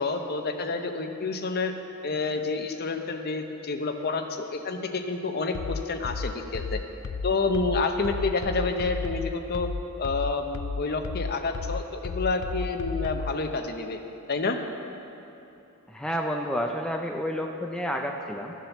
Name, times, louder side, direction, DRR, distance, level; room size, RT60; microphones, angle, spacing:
voice 1, 0.0-1.7 2.0-6.8 7.2-9.7 10.0-14.0 14.3-14.6, left 3 dB, 45° left, 5 dB, 0.8 m, -29 dB
sound 1, 5.5-13.4, left 4 dB, 60° left, 0.4 m, -33 dB
voice 2, 15.9-18.5, equal, 5° left, 1 dB, 0.5 m, -30 dB
12.5 x 7.4 x 7.0 m, 2.9 s
head